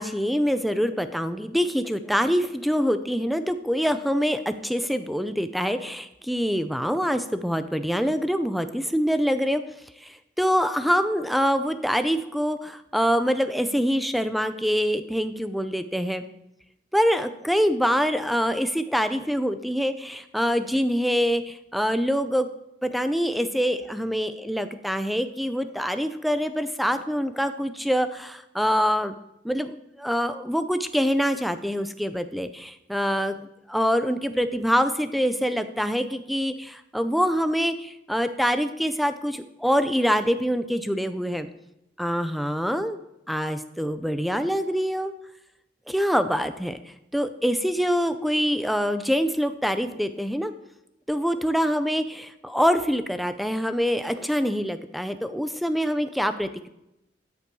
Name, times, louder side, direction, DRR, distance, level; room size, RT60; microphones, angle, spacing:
voice 1, 0.0-9.6 10.0-16.2 16.9-22.5 22.8-29.1 29.4-33.4 33.7-41.5 42.0-43.0 43.3-45.1 45.9-46.8 47.1-50.5 51.1-56.7, equal, ahead, 10 dB, 0.5 m, -25 dB
13.0 x 6.9 x 4.6 m, 0.87 s
head